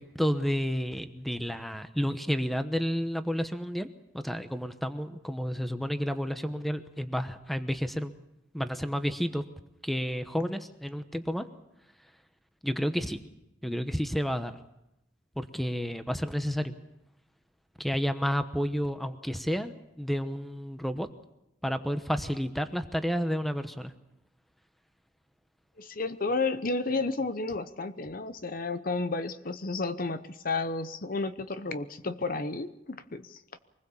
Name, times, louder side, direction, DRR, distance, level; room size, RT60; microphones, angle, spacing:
voice 1, 0.0-3.9 4.1-8.1 8.5-9.4 9.8-11.5 12.6-13.2 13.6-14.6 15.4-16.7 17.8-21.1 21.6-23.9, equal, ahead, 9 dB, 1.0 m, -31 dB
voice 2, 25.8-33.4, left 3 dB, 45° left, 12 dB, 0.9 m, -32 dB
25.0 x 20.0 x 7.2 m, 0.87 s
head